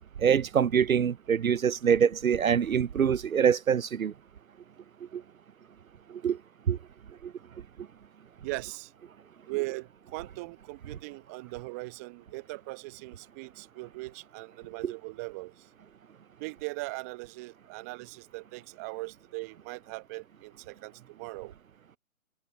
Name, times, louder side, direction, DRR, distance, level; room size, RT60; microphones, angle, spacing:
voice 1, 0.2-4.1 5.1-5.2 6.2-6.4 6.7-6.8 7.2-7.3 14.8-14.9, right 7 dB, 70° right, 0.6 m, -24 dB
voice 2, 8.4-8.9 9.5-15.5 16.4-21.5, right 26 dB, 10° right, 1.0 m, -39 dB
figure-of-eight pair, 140°, 42 cm